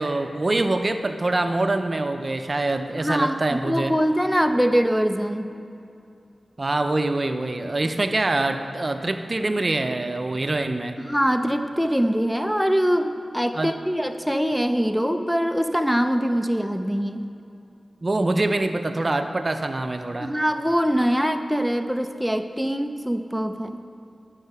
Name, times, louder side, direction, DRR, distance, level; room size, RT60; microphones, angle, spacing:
voice 1, 0.0-3.9 6.6-11.0 13.5-13.7 18.0-20.3, right 2 dB, 45° right, 7 dB, 0.6 m, -24 dB
voice 2, 3.0-5.5 11.0-17.3 20.2-23.8, equal, ahead, 7 dB, 0.5 m, -23 dB
11.5 x 5.6 x 6.7 m, 2.5 s
cardioid pair, 50°, 0 cm